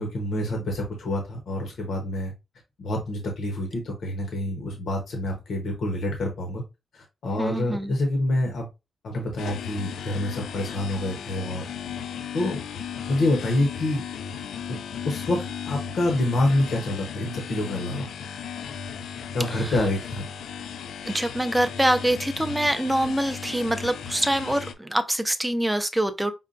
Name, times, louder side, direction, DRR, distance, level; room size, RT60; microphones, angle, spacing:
voice 1, 0.0-2.3 2.8-6.6 6.9-8.7 9.0-11.7 12.3-12.6 13.1-14.0 15.0-18.1 19.3-20.2, left 1 dB, 70° left, 0.9 m, -27 dB
voice 2, 7.4-7.9 19.5-19.8 21.0-26.3, right 1 dB, 5° right, 0.4 m, -25 dB
sound 1, 9.4-24.7, left 7 dB, 85° left, 0.4 m, -35 dB
5.4 x 2.2 x 2.5 m
wide cardioid pair, 150°, 0 cm